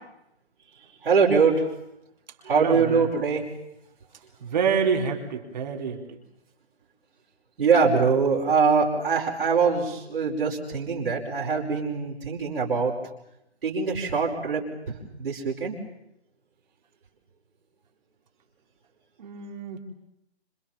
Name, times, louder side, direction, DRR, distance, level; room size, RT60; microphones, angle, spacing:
voice 1, 1.0-1.7 2.4-3.4 7.6-12.9 13.6-15.8, right 5 dB, 55° right, -3 dB, 5.2 m, -23 dB
voice 2, 2.5-3.1 4.4-6.0 19.2-19.8, right 6 dB, 40° right, 2 dB, 3.9 m, -27 dB
27.0 x 26.0 x 7.4 m, 0.84 s
hypercardioid pair, 160°, 33 cm